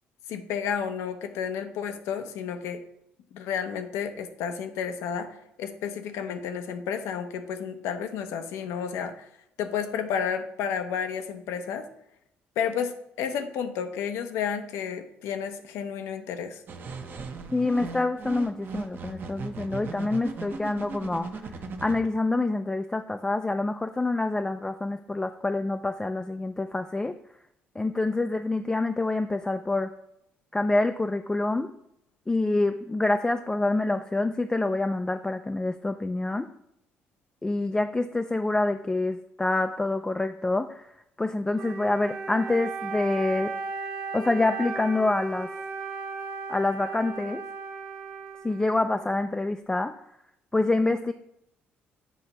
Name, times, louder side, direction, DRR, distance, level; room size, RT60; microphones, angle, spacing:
voice 1, 0.3-2.8 3.3-5.3 5.6-9.3 9.6-11.9 12.6-16.6, left 7 dB, 85° left, 8 dB, 0.7 m, -31 dB
sound 1, 16.7-22.0, right 4 dB, 45° right, 0.8 m, -37 dB
voice 2, 17.5-21.4 21.8-27.2 27.8-29.9 30.5-31.7 32.3-36.5 37.4-40.9 41.2-43.5 44.1-45.5 46.5-47.4 48.4-49.9 50.5-51.1, left 2 dB, 15° left, 7 dB, 0.3 m, -26 dB
Wind instrument woodwind instrument, 41.5-49.1, right 4 dB, 85° right, 1.2 m, -36 dB
7.4 x 2.9 x 5.4 m, 0.80 s
cardioid pair, 90°, 5 cm